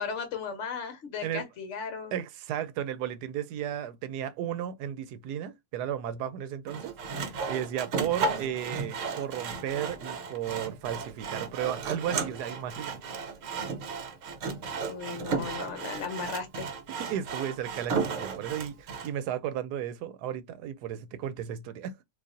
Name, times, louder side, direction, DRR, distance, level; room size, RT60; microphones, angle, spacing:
voice 1, 0.0-2.2 14.9-16.7, left 5 dB, 55° left, 1.1 m, -36 dB
voice 2, 2.1-6.9 7.3-13.0 17.1-22.0, right 10 dB, 90° right, 1.1 m, -34 dB
Sawing, 6.7-19.1, right 4 dB, 60° right, 1.0 m, -34 dB
3.9 x 2.8 x 2.4 m
omnidirectional pair, 1.7 m